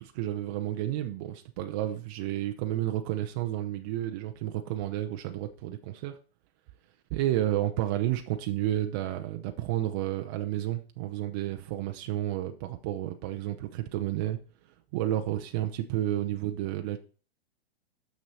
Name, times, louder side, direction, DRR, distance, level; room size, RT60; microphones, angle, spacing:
voice 1, 0.0-6.2 7.1-14.4 14.9-17.0, right 13 dB, 20° right, 5 dB, 0.4 m, -31 dB
6.2 x 6.1 x 4.1 m, 0.38 s
hypercardioid pair, 145°, 32 cm